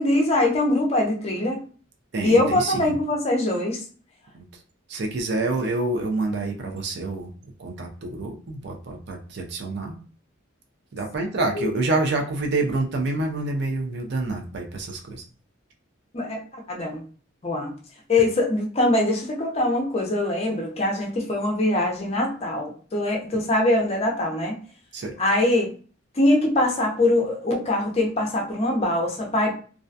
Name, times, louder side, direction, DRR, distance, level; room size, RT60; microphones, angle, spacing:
voice 1, 0.0-1.6 2.2-3.8 11.6-11.7 16.1-16.4 16.7-17.0 17.4-17.7 18.1-24.5 25.2-25.7 26.2-29.6, left 1 dB, 30° left, 0 dB, 0.5 m, -22 dB
voice 2, 2.1-3.0 4.3-4.4 4.9-7.3 7.6-10.0 10.9-15.2 23.3-23.4 24.9-25.1, right 2 dB, 55° right, 2 dB, 0.4 m, -27 dB
2.3 x 2.2 x 2.5 m, 0.40 s
head